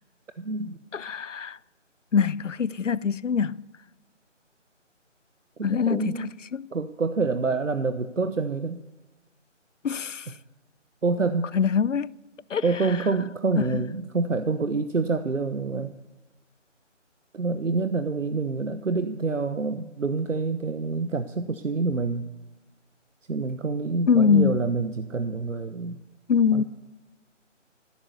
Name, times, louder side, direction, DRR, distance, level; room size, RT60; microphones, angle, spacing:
voice 1, 0.4-0.8 5.6-6.3 6.7-8.8 11.0-11.5 12.6-15.9 17.3-22.3 23.3-26.0 26.5-26.6, right 4 dB, 80° right, 1.1 m, -27 dB
voice 2, 0.9-1.6 2.1-3.6 5.6-6.7 9.8-10.3 11.5-12.1 12.5-12.6 13.6-13.8 24.1-24.6 26.3-26.6, left 6 dB, 75° left, 0.6 m, -23 dB
15.0 x 12.5 x 6.7 m
figure-of-eight pair, 165°, 38 cm